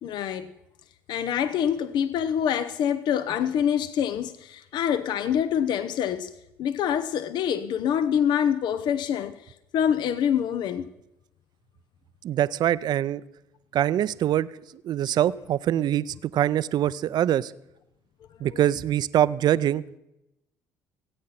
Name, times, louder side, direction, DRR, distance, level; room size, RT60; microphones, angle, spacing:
voice 1, 0.0-0.5 1.1-6.3 6.6-9.4 9.7-10.9 18.5-18.6, left 9 dB, 60° left, 0.6 m, -25 dB
voice 2, 12.2-13.2 13.7-14.5 14.8-17.5 18.4-19.8, right 11 dB, 55° right, 0.5 m, -24 dB
17.5 x 8.6 x 5.8 m
hypercardioid pair, 60°, 8 cm